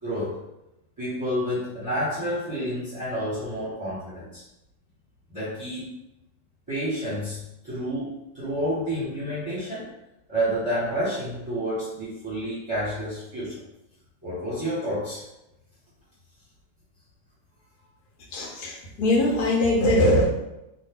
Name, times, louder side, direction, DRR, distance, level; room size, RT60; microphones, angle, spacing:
voice 1, 0.0-0.4 1.0-4.4 5.3-5.9 6.7-9.9 10.3-13.5 14.2-15.2, equal, 20° right, -10 dB, 1.0 m, -29 dB
voice 2, 18.3-20.3, left 1 dB, 65° left, -1 dB, 1.3 m, -21 dB
3.1 x 2.4 x 3.6 m, 0.91 s
omnidirectional pair, 1.9 m